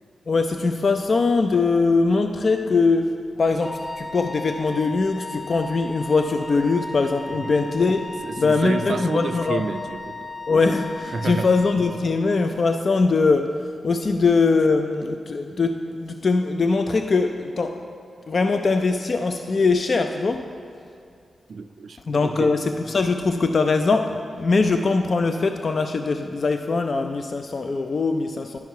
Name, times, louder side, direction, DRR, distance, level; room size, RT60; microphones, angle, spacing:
voice 1, 0.3-3.1 3.4-8.0 8.4-9.6 10.5-17.8 18.3-20.5 22.1-22.6 22.9-28.6, left 4 dB, 50° left, 6 dB, 0.3 m, -21 dB
Wind instrument woodwind instrument, 3.6-11.8, left 3 dB, 20° left, 1.4 m, -36 dB
voice 2, 8.2-10.3 11.1-11.5 21.5-22.5, right 4 dB, 65° right, 11 dB, 0.3 m, -30 dB
10.5 x 5.7 x 4.6 m, 2.3 s
wide cardioid pair, 100°, 0 cm